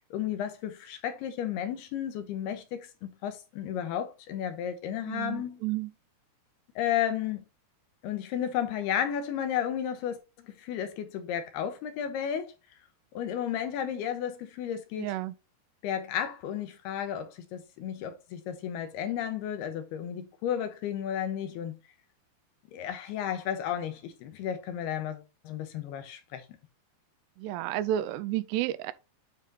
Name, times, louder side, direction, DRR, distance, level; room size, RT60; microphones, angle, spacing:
voice 1, 0.1-5.6 6.8-7.4 8.0-12.5 13.1-15.1 15.8-21.8 22.7-26.4, left 9 dB, 80° left, 2.8 m, -33 dB
voice 2, 5.1-5.9 15.0-15.3 27.4-28.9, right 13 dB, 85° right, 2.7 m, -31 dB
9.1 x 3.9 x 3.9 m
omnidirectional pair, 4.8 m